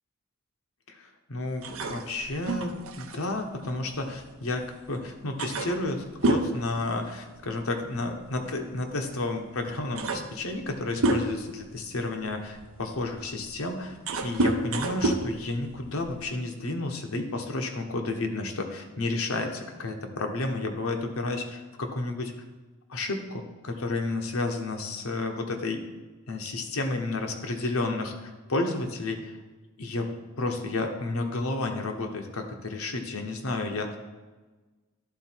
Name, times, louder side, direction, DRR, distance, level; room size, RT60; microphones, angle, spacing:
voice 1, 0.9-22.3 22.9-25.8 26.3-29.4 29.8-30.1 30.4-34.0, left 2 dB, 85° left, 4 dB, 1.0 m, -31 dB
sound 1, 1.6-4.7 5.0-5.1 5.4-7.6 7.8-8.1 9.1-9.2 9.6-11.6 12.2-16.3, right 2 dB, 75° right, 0.7 m, -30 dB
11.5 x 3.9 x 4.4 m, 1.2 s
head